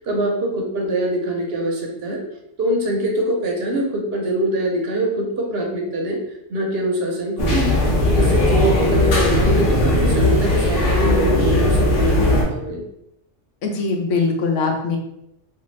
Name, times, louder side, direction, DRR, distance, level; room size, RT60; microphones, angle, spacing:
voice 1, 0.0-2.2 2.6-6.2 6.5-7.8 8.1-12.8, right 1 dB, 60° right, 1 dB, 0.8 m, -23 dB
sound 1, 7.4-12.4, left 1 dB, 60° left, 0.9 m, -18 dB
voice 2, 13.6-15.0, left 4 dB, 85° left, 2 dB, 0.9 m, -21 dB
2.5 x 2.3 x 3.1 m, 0.80 s
omnidirectional pair, 1.2 m